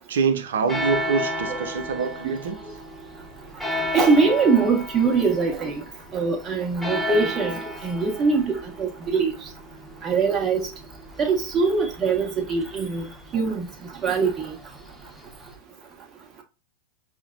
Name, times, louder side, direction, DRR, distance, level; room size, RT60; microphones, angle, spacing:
voice 1, 0.1-2.6, right 5 dB, 75° right, 0.6 m, -25 dB
sound 1, 0.7-15.6, left 1 dB, ahead, 0.9 m, -34 dB
voice 2, 3.9-5.8 6.1-9.3 10.0-10.7 11.2-13.0 13.3-13.7 14.0-14.5, right 4 dB, 35° right, 1.2 m, -22 dB
5.6 x 2.1 x 2.4 m
hypercardioid pair, 100°, 0 cm